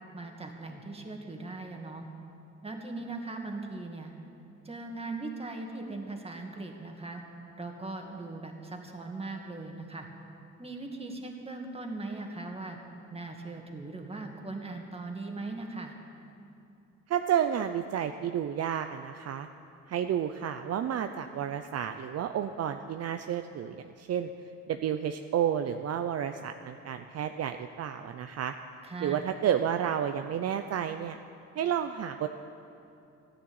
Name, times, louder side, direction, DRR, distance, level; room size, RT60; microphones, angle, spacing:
voice 1, 0.1-2.1 2.6-4.1 4.6-7.2 7.6-10.1 10.6-12.8 13.1-15.9 28.8-29.2, right 2 dB, 20° right, 2 dB, 2.1 m, -39 dB
voice 2, 17.1-19.5 19.9-24.3 24.7-28.5 29.0-31.2 31.6-32.3, right 9 dB, 55° right, 7 dB, 0.6 m, -31 dB
14.0 x 10.5 x 8.8 m, 2.7 s
cardioid pair, 90°, 30 cm